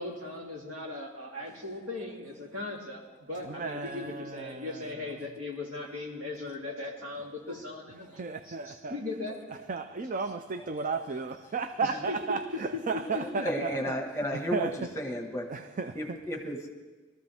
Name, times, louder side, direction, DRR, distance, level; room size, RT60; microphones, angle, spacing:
voice 1, 0.0-9.4 11.8-13.5, left 2 dB, 75° right, -2 dB, 3.1 m, -38 dB
voice 2, 3.4-5.2 8.2-9.0 9.5-13.8 14.1-14.9 15.5-16.2, right 4 dB, 40° right, 9 dB, 0.5 m, -34 dB
voice 3, 13.4-14.7 14.9-15.5 15.9-16.7, equal, 15° left, 2 dB, 1.6 m, -33 dB
22.0 x 13.5 x 3.5 m, 1.3 s
head